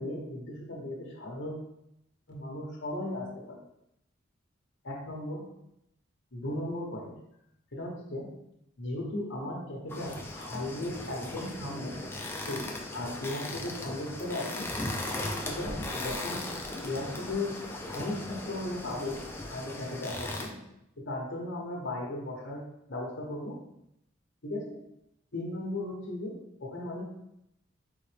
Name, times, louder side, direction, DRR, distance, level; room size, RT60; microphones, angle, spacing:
voice 1, 0.0-1.5 2.3-3.6 4.8-5.5 6.3-7.1 7.7-8.3 8.8-12.1 12.5-14.7 15.4-16.5 16.8-17.6 17.9-19.2 19.5-20.6 21.0-23.6 24.4-24.8 25.3-27.0, left 1 dB, 65° left, -2 dB, 1.0 m, -36 dB
sound 1, 9.9-20.5, left 2 dB, 10° left, 0.4 m, -38 dB
4.0 x 3.9 x 3.3 m, 0.80 s
head